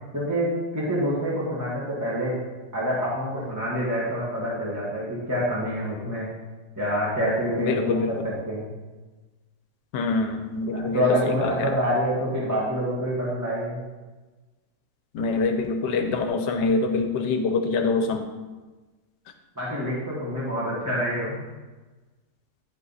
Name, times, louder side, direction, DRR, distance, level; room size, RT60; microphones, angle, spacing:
voice 1, 0.1-2.3 2.7-6.3 6.8-8.7 10.7-13.8 19.6-21.4, equal, 10° right, -7 dB, 1.8 m, -26 dB
voice 2, 7.6-8.2 9.9-11.7 15.1-18.3, left 3 dB, 75° left, 6 dB, 1.4 m, -25 dB
10.5 x 5.2 x 4.1 m, 1.2 s
omnidirectional pair, 2.0 m